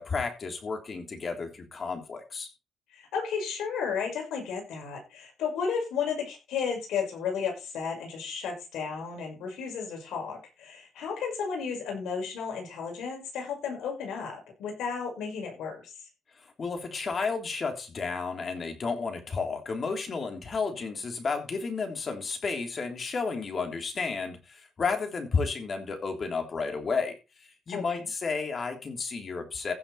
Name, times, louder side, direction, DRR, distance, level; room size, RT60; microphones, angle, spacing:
voice 1, 0.0-2.5 16.6-27.1 27.7-29.7, left 4 dB, 45° left, 3.3 m, -32 dB
voice 2, 2.9-15.9 27.7-28.1, left 6 dB, 90° left, 5.7 m, -33 dB
15.0 x 6.7 x 4.2 m
cardioid pair, 90°, 0 cm